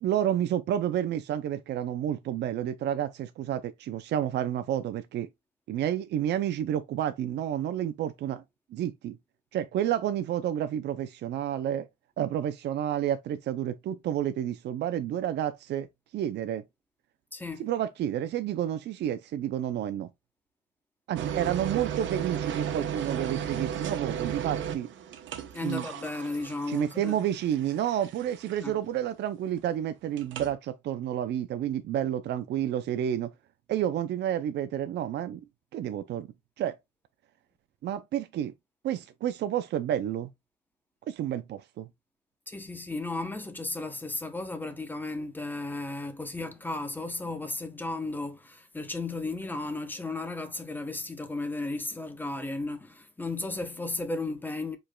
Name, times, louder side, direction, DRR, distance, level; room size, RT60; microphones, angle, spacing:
voice 1, 0.0-5.3 5.7-8.4 8.7-9.2 9.5-11.9 12.2-15.9 16.1-16.6 17.6-20.1 21.1-24.9 25.6-25.8 26.7-33.3 33.7-35.4 35.7-36.3 36.6-36.8 37.8-38.5 38.8-40.3 41.1-41.9, right 11 dB, 65° right, 0.4 m, -30 dB
voice 2, 17.3-17.7 25.5-27.2 28.6-28.8 42.5-54.8, left 2 dB, 10° left, 0.7 m, -34 dB
sound 1, 21.2-28.8 30.2-30.5, right 8 dB, 85° right, 0.9 m, -35 dB
5.0 x 4.4 x 2.2 m
cardioid pair, 170°, 19 cm